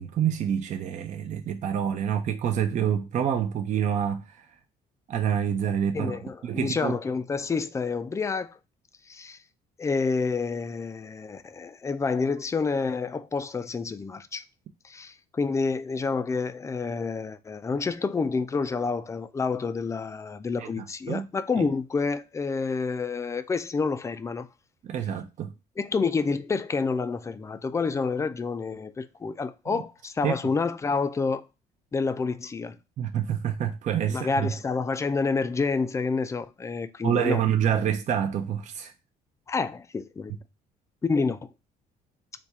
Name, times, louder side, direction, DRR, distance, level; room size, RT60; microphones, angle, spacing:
voice 1, 0.0-4.2 5.1-6.2 6.4-6.9 20.6-20.7 21.1-21.3 21.6-21.7 24.8-25.5 30.2-30.3 33.0-34.5 37.0-38.9, right 9 dB, 45° right, 0.5 m, -27 dB
voice 2, 5.9-8.6 9.1-9.4 9.8-14.4 14.8-24.5 25.8-31.4 31.9-32.8 34.1-37.4 39.5-40.3 41.0-41.4, left 4 dB, 15° left, 0.4 m, -28 dB
4.1 x 2.3 x 4.6 m
cardioid pair, 110°, 17 cm